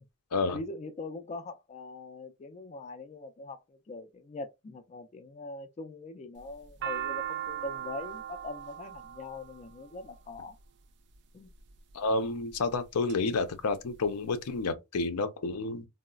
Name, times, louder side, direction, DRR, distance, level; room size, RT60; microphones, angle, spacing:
voice 1, 0.5-10.6 11.3-11.5, left 2 dB, 30° left, 0.3 m, -42 dB
sound 1, 6.4-10.6 11.4-11.9 12.5-13.2 13.5-13.6 13.8-14.6, right 11 dB, 50° right, 0.4 m, -38 dB
voice 2, 11.9-15.9, left 3 dB, 90° left, 0.5 m, -30 dB
3.9 x 2.0 x 2.3 m
head